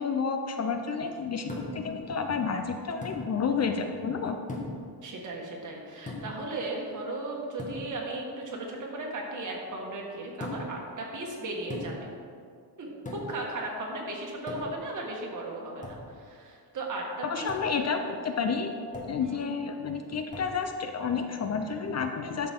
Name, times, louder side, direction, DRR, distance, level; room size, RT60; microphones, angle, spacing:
voice 1, 0.0-4.4 17.2-18.7 19.1-22.5, left 5 dB, 40° left, 6 dB, 0.6 m, -30 dB
sound 1, 1.5-1.9 3.0-3.3 4.5-4.9 6.1-6.4 7.6-7.9 10.4-10.8 11.7-12.1 13.1-13.4 14.5-14.9 15.8-16.1 17.5-17.7 18.9-19.3 20.3-20.6, left 2 dB, 20° left, 1.5 m, -38 dB
voice 2, 5.0-12.1 12.8-17.1 17.3-17.5 19.2-19.4, right 2 dB, 45° right, -2 dB, 1.9 m, -36 dB
12.5 x 6.8 x 3.7 m, 2.3 s
cardioid pair, 145°, 40 cm